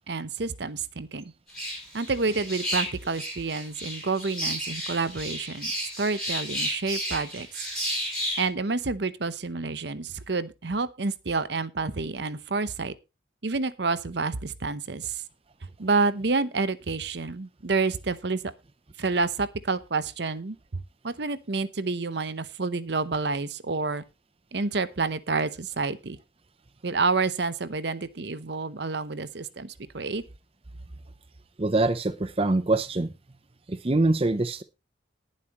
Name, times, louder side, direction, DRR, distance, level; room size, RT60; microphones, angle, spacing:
voice 1, 0.1-1.3 1.9-7.6 8.4-12.9 13.4-15.2 15.8-18.4 19.0-24.0 24.5-26.2 26.8-30.2, right 3 dB, 60° right, 14 dB, 0.8 m, -29 dB
sound 1, 1.5-8.5, equal, 5° left, 6.0 m, -32 dB
voice 2, 31.6-33.1 33.7-34.6, right 2 dB, 30° right, 11 dB, 0.6 m, -24 dB
19.0 x 7.5 x 3.0 m, 0.26 s
head